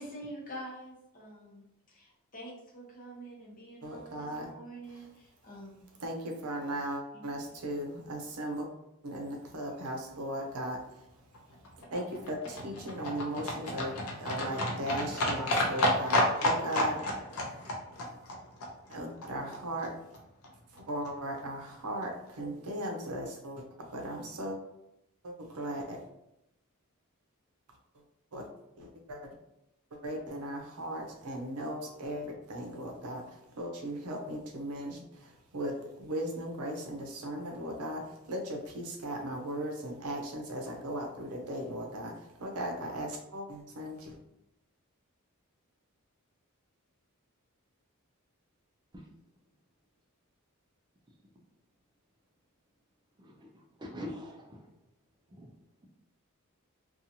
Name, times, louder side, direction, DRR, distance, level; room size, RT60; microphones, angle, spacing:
voice 1, 0.0-5.8 7.1-7.4, right 1 dB, 40° left, -3 dB, 0.8 m, -46 dB
voice 2, 3.8-4.5 5.0-5.1 6.0-8.7 9.0-10.8 11.9-17.0 18.9-19.9 20.7-23.6 23.9-24.6 25.2-26.0 28.3-28.4 28.8-29.3 30.0-33.2 33.6-35.7 36.0-38.0 38.3-42.1 42.4-44.2, right 1 dB, 85° right, 2 dB, 0.6 m, -37 dB
Livestock farm animals working animals, 11.3-19.6 19.8-19.9 20.1-20.2 20.4-20.5 20.8-20.9 21.1-21.2 21.4-21.5 21.7-21.8 22.0-22.1, left 1 dB, 75° left, 0.6 m, -31 dB
voice 3, 53.2-53.5 53.8-54.7 55.3-55.5, left 1 dB, 20° right, 1 dB, 0.4 m, -43 dB
2.8 x 2.3 x 2.7 m, 0.85 s
head